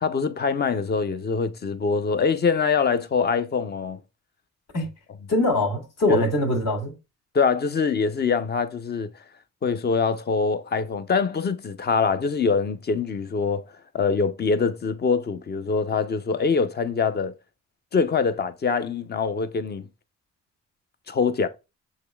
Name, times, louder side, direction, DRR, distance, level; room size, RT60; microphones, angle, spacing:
voice 1, 0.0-4.0 6.1-6.3 7.3-9.1 9.6-13.6 13.9-17.3 17.9-19.9 21.1-21.5, left 5 dB, 35° left, 0.6 m, -24 dB
voice 2, 5.3-6.9, left 1 dB, 60° left, 1.9 m, -23 dB
6.5 x 3.1 x 2.2 m
cardioid pair, 90°, 30 cm